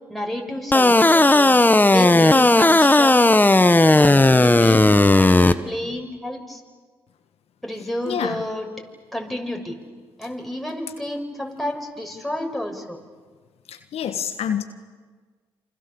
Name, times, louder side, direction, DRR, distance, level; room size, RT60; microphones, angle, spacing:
voice 1, 0.1-1.6 1.9-3.4 4.0-4.8 5.2-6.6 7.6-8.8 9.1-9.8 10.2-13.0, left 1 dB, ahead, 2 dB, 6.4 m, -30 dB
sound 1, 0.7-5.5, left 2 dB, 15° left, 1.4 m, -14 dB
voice 2, 8.1-8.4 13.7-14.6, left 8 dB, 75° left, 7 dB, 1.5 m, -27 dB
28.5 x 26.5 x 7.1 m, 1.4 s
supercardioid pair, 50°, 11 cm